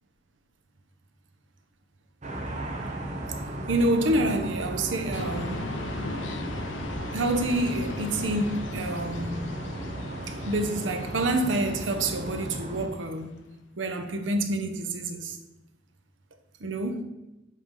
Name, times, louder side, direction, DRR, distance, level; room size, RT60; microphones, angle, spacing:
sound 1, 2.2-12.9, right 1 dB, 40° right, 0.8 m, -35 dB
voice 1, 3.7-5.7 7.1-9.6 10.3-13.3 13.8-15.4 16.6-17.0, right 1 dB, 80° right, 0.8 m, -28 dB
sound 2, 5.1-13.4, left 3 dB, 75° left, 0.5 m, -39 dB
7.7 x 3.4 x 3.7 m
head